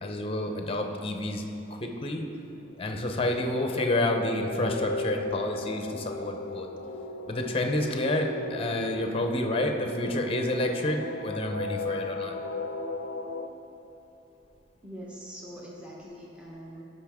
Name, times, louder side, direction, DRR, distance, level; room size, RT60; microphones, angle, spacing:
voice 1, 0.0-2.3 2.8-6.7 7.3-12.4, left 1 dB, 30° left, 4 dB, 0.7 m, -29 dB
sound 1, 2.8-13.5, left 2 dB, 90° left, 0.4 m, -36 dB
voice 2, 14.8-16.8, equal, 5° right, -5 dB, 1.0 m, -43 dB
12.5 x 5.5 x 3.6 m, 2.9 s
head